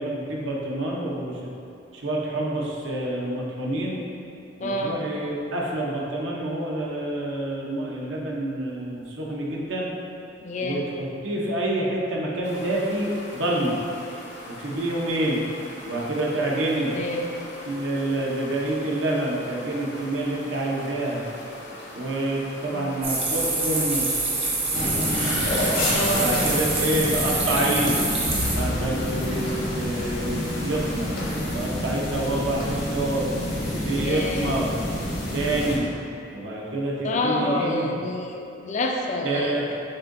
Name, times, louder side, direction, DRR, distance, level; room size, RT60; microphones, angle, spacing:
voice 1, 0.0-1.4 1.9-4.0 4.6-9.9 10.6-13.8 14.5-15.4 15.9-16.9 17.7-21.2 21.9-24.1 26.1-28.0 28.5-31.1 31.5-34.7 35.3-35.9 36.3-37.9 39.2-39.7, right 1 dB, 70° right, -3 dB, 0.7 m, -27 dB
voice 2, 4.6-5.0 10.4-10.9 16.9-17.4 22.7-22.9 25.9-26.6 33.9-34.6 37.0-39.7, left 1 dB, 40° left, 2 dB, 0.3 m, -28 dB
sound 1, 12.4-31.4, left 1 dB, 60° left, 0.7 m, -41 dB
sound 2, 23.0-28.6, right 3 dB, 30° right, 0.8 m, -26 dB
sound 3, 24.7-35.8, left 1 dB, 85° left, 1.2 m, -28 dB
7.4 x 2.7 x 2.6 m, 2.7 s
head